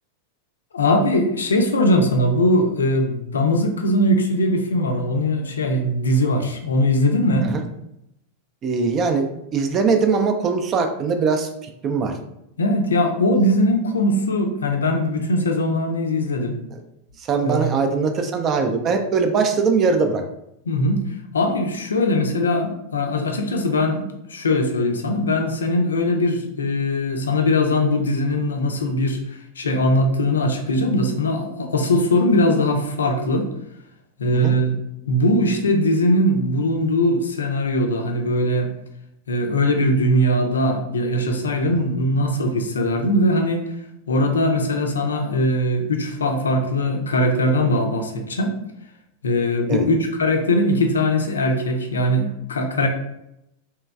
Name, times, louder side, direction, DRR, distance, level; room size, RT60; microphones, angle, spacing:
voice 1, 0.7-7.5 12.6-16.6 17.4-17.8 20.7-21.0 21.3-33.5 34.2-34.8 35.1-38.7 39.3-43.7 44.1-48.5 49.2-52.9, left 1 dB, 70° left, 4 dB, 0.5 m, -20 dB
voice 2, 8.6-11.5 11.8-12.2 16.7-16.8 17.2-20.2 34.4-34.5 49.7-49.8, right 5 dB, 30° right, 5 dB, 0.4 m, -21 dB
3.2 x 3.0 x 2.3 m, 0.81 s
figure-of-eight pair, 90°, 0 cm